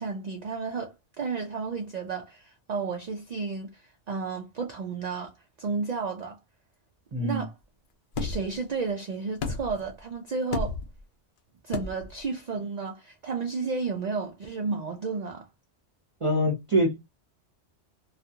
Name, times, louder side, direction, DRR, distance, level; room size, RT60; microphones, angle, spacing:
voice 1, 0.0-6.4 7.2-7.6 8.2-10.8 11.6-15.5, right 4 dB, 60° right, 0.4 m, -32 dB
voice 2, 7.1-7.5 16.2-17.1, equal, 30° right, 0.8 m, -25 dB
sound 1, 8.1-8.5 9.4-9.9 10.5-11.0 11.7-12.1, left 3 dB, 60° left, 0.6 m, -32 dB
2.4 x 2.3 x 2.6 m
omnidirectional pair, 1.2 m